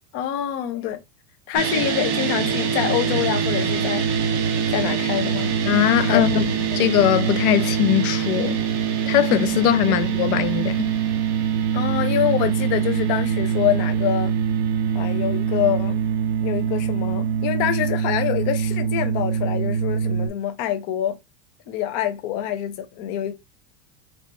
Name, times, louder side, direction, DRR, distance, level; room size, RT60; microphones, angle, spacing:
voice 1, 0.1-1.0 1.5-4.1 4.7-5.6 6.0-6.2 6.6-6.8 9.9-10.0 11.7-14.3 14.9-16.0 16.4-21.2 21.7-23.3, left 11 dB, 30° left, 0.5 m, -25 dB
sound 1, 1.5-20.3, right 7 dB, 50° right, 1.3 m, -23 dB
voice 2, 5.7-8.6 9.1-10.9, left 13 dB, 70° left, 0.6 m, -21 dB
3.3 x 3.0 x 3.8 m
supercardioid pair, 170°, 45 cm